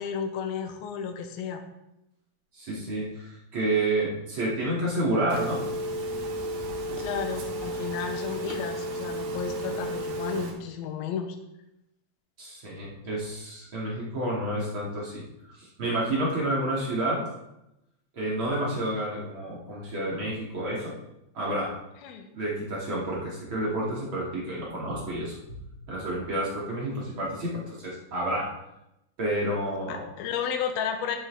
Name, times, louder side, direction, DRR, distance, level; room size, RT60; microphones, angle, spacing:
voice 1, 0.0-1.6 7.0-11.4 22.0-22.3 29.9-31.2, left 7 dB, 80° left, 5 dB, 2.2 m, -33 dB
voice 2, 2.5-5.7 12.4-15.2 15.5-17.3 18.1-20.9 21.3-21.8 22.3-28.6 29.2-30.0, right 1 dB, 35° right, -6 dB, 2.6 m, -30 dB
Telephone, 5.3-10.5, right 1 dB, 85° right, 4.5 m, -33 dB
12.0 x 8.6 x 3.7 m, 0.86 s
omnidirectional pair, 5.6 m